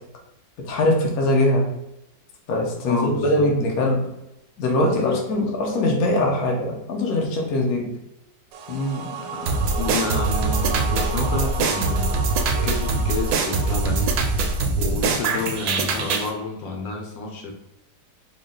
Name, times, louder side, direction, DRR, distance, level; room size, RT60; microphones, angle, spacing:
voice 1, 0.6-1.7 2.5-4.1 4.6-7.9, left 1 dB, 60° left, 0 dB, 1.2 m, -21 dB
voice 2, 2.8-3.5 4.6-5.2 8.7-12.2 12.6-14.1 14.8-17.5, left 3 dB, 80° left, 1 dB, 1.4 m, -29 dB
sound 1, 8.5-14.6, right 5 dB, 85° right, 1.3 m, -33 dB
sound 2, 9.5-16.3, right 3 dB, 70° right, 0.9 m, -23 dB
4.0 x 2.3 x 3.7 m, 0.88 s
omnidirectional pair, 2.0 m